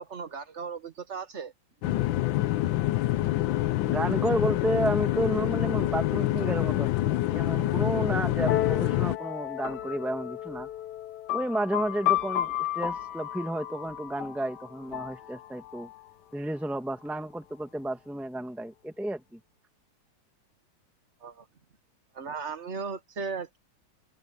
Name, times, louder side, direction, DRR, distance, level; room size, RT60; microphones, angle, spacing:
voice 1, 0.0-1.5 21.2-21.5 22.1-23.6, right 5 dB, 40° right, 1.4 m, -36 dB
sound 1, 1.8-9.2, left 15 dB, 80° left, 1.4 m, -26 dB
voice 2, 3.9-10.7 11.3-15.9 16.3-19.4, right 1 dB, ahead, 1.2 m, -32 dB
sound 2, 8.5-16.0, left 12 dB, 65° left, 1.5 m, -33 dB
omnidirectional pair, 2.1 m